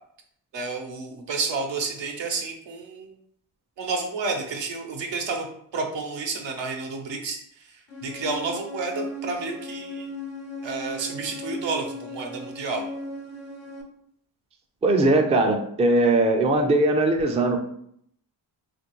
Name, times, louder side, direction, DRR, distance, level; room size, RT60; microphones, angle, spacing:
voice 1, 0.5-3.1 3.8-5.5 5.7-10.1 10.6-12.8, right 4 dB, 75° right, 2 dB, 0.8 m, -30 dB
sound 1, 7.9-13.8, left 1 dB, 85° left, 0.7 m, -37 dB
voice 2, 14.8-17.6, right 2 dB, 15° right, 3 dB, 0.4 m, -20 dB
2.9 x 2.5 x 2.9 m, 0.69 s
cardioid pair, 65°, 45 cm